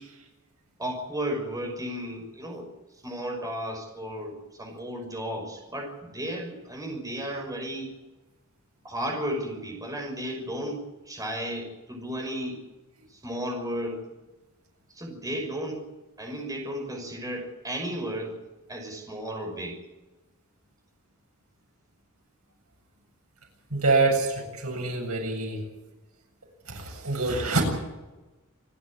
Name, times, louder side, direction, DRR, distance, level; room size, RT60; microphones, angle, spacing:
voice 1, 0.8-2.7 3.0-7.9 8.8-12.6 13.1-14.0 14.9-15.8 16.2-18.4 18.7-19.8, equal, 15° right, 2 dB, 6.1 m, -34 dB
voice 2, 23.7-25.6 26.7-27.6, right 3 dB, 90° right, 2 dB, 7.7 m, -25 dB
27.5 x 12.5 x 9.9 m, 1.1 s
head